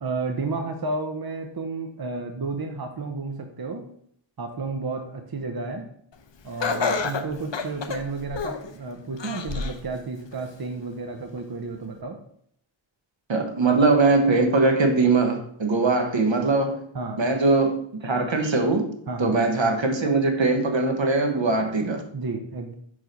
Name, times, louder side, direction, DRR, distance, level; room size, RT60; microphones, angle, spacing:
voice 1, 0.0-3.9 4.4-5.9 6.4-12.2 16.9-17.2 19.1-19.4 22.1-22.7, right 3 dB, 50° right, 4 dB, 0.8 m, -32 dB
Laughter, 6.6-8.7 9.2-9.8 10.3-10.4 11.4-11.5, left 5 dB, 65° left, 0.8 m, -28 dB
voice 2, 13.3-16.8 17.2-18.9 19.2-22.0, right 3 dB, 70° right, 5 dB, 1.2 m, -21 dB
5.6 x 4.9 x 5.2 m, 0.65 s
wide cardioid pair, 55°, 46 cm